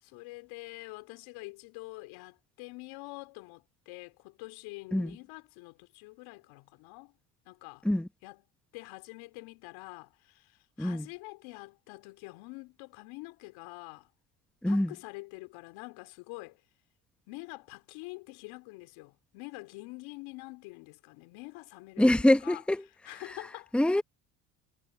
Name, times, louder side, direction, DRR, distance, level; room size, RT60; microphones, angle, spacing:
voice 1, 0.0-7.1 7.5-7.9 8.2-8.4 8.7-14.1 14.6-16.6 17.3-22.6 23.0-23.7, left 24 dB, 75° left, 3.1 m, -46 dB
voice 2, 14.6-14.9 22.0-22.8 23.7-24.0, left 1 dB, ahead, 1.1 m, -24 dB
supercardioid pair, 75°, 47 cm